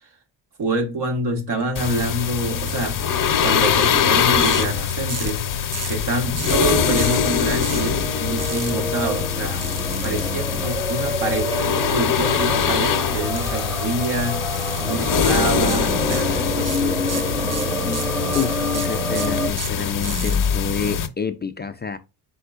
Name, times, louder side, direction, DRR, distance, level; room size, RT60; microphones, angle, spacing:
voice 1, 0.6-3.0 3.4-5.4 5.8-9.6 10.0-14.4 14.8-17.8, right 2 dB, 65° right, 1.6 m, -26 dB
sound 1, 1.8-21.1, left 7 dB, 45° left, 0.7 m, -23 dB
sound 2, 4.4-4.6 5.1-5.4 5.7-6.0 6.4-6.6 7.0-7.2 7.6-7.9 8.4-8.7 9.6-10.2 13.3-13.6 13.9-14.1 14.5-14.8 15.2-15.4 15.7-16.3 16.6-20.3, right 5 dB, 35° right, 0.8 m, -32 dB
sound 3, 6.5-19.5, equal, 10° right, 0.9 m, -28 dB
voice 2, 18.3-22.0, left 5 dB, 25° left, 0.3 m, -28 dB
4.4 x 4.3 x 2.3 m
cardioid pair, 95°, 43 cm